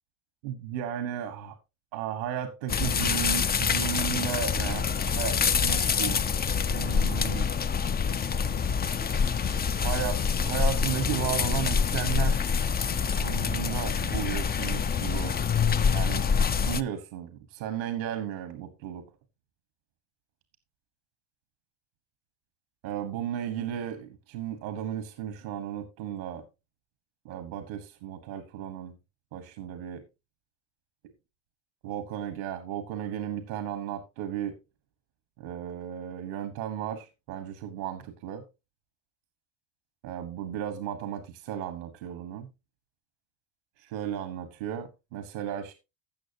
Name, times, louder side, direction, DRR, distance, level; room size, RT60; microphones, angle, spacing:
voice 1, 0.4-1.5 1.9-6.2 6.7-7.5 9.8-12.5 13.2-15.4 15.9-16.3 16.5-19.0 22.8-26.4 27.2-28.9 29.3-30.0 31.8-34.6 35.4-38.4 40.0-42.5 43.8-45.7, right 9 dB, 90° right, 1.5 m, -34 dB
sound 1, 2.7-16.8, left 6 dB, 20° left, 0.4 m, -26 dB
16.0 x 6.3 x 2.8 m
hypercardioid pair, 70°, 50 cm